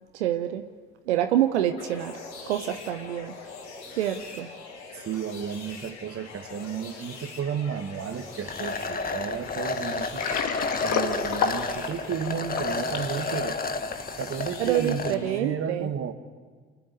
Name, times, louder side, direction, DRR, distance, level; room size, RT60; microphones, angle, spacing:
voice 1, 0.1-0.6 1.1-2.1 2.5-3.3 4.0-4.5 14.6-15.9, right 11 dB, 80° right, 8 dB, 0.9 m, -26 dB
sound 1, 1.8-15.4, left 4 dB, 80° left, 6.4 m, -43 dB
voice 2, 4.9-10.3 10.8-13.6 14.2-16.1, right 7 dB, 40° right, 10 dB, 1.7 m, -33 dB
sound 2, 8.5-15.1, left 3 dB, 25° left, 1.6 m, -31 dB
Water, 10.0-13.2, left 7 dB, 55° left, 2.2 m, -29 dB
28.0 x 10.0 x 9.5 m, 1.6 s
figure-of-eight pair, 55°, 34 cm